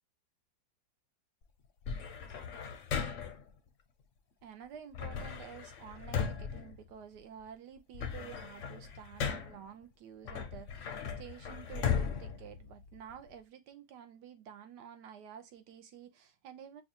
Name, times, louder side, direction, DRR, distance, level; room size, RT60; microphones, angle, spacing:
sound 1, 1.8-3.5 4.9-7.4 7.8-9.7 10.2-13.3, left 7 dB, 60° left, 0.8 m, -37 dB
voice 1, 4.4-16.8, right 8 dB, 75° right, 1.2 m, -50 dB
5.6 x 2.3 x 2.8 m
omnidirectional pair, 1.9 m